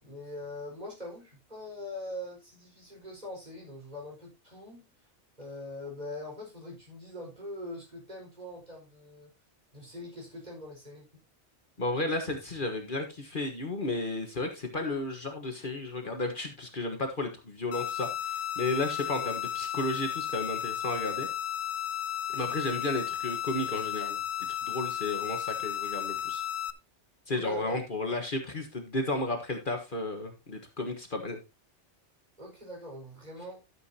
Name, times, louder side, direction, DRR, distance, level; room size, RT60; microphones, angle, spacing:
voice 1, 0.0-4.9 5.4-9.3 9.7-11.0 19.1-19.2 22.4-22.8 27.3-27.8 32.4-33.6, left 1 dB, 35° right, 5.0 m, -42 dB
voice 2, 11.8-21.3 22.3-24.2 24.6-26.4 27.3-31.4, left 2 dB, 45° left, 1.6 m, -33 dB
sound 1, 17.7-26.7, left 10 dB, 65° left, 1.0 m, -34 dB
13.0 x 7.8 x 2.8 m
omnidirectional pair, 1.2 m